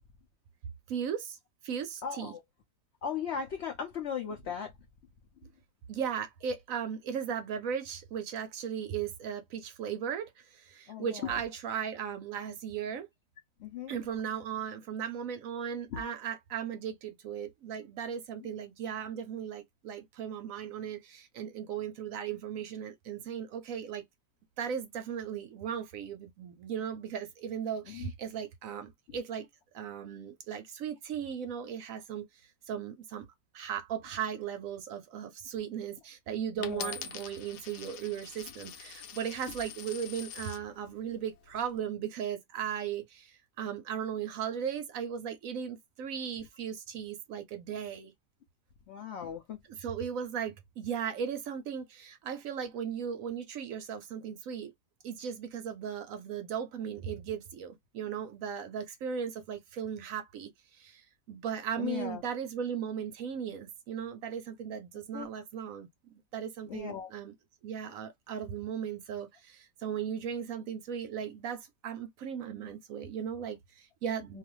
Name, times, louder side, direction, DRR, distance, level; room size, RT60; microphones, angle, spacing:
voice 1, 0.9-1.4 1.6-2.3 5.9-13.1 13.9-24.0 24.6-29.5 29.7-32.3 32.7-33.3 33.5-48.1 49.7-54.7 55.0-67.3 67.6-74.4, right 8 dB, 70° right, 0.9 m, -37 dB
voice 2, 2.0-2.4 3.0-4.7 5.4-5.5 10.9-11.4 13.6-13.9 15.9-16.1 18.4-18.5 27.9-28.1 29.1-29.2 36.6-36.9 48.9-49.6 61.8-62.2 65.1-65.3 66.7-67.1 74.3-74.4, left 8 dB, 65° left, 0.6 m, -37 dB
Coin (dropping), 36.6-40.6 41.3-41.8, left 9 dB, 80° left, 1.2 m, -44 dB
2.6 x 2.4 x 3.0 m
omnidirectional pair, 1.7 m